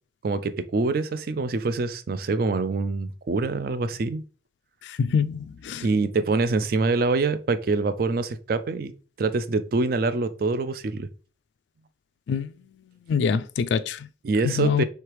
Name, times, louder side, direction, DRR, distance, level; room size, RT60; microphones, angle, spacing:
voice 1, 0.2-4.2 5.8-8.9 9.2-11.1 14.2-14.8, right 3 dB, 55° right, 0.4 m, -25 dB
voice 2, 4.8-5.9 12.3-12.5 13.1-14.1 14.4-14.8, left 6 dB, 75° left, 0.3 m, -25 dB
3.3 x 3.2 x 4.6 m
head